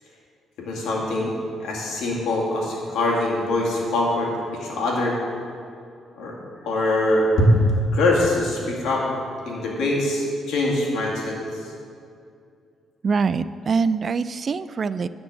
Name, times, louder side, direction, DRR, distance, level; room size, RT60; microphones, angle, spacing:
voice 1, 0.6-5.2 6.2-6.3 6.6-7.6 7.9-9.1 9.4-11.4, left 1 dB, 80° left, -2 dB, 2.1 m, -23 dB
voice 2, 13.0-15.1, right 5 dB, 45° right, 15 dB, 0.3 m, -24 dB
10.5 x 4.5 x 7.7 m, 2.4 s
cardioid pair, 90°, 0 cm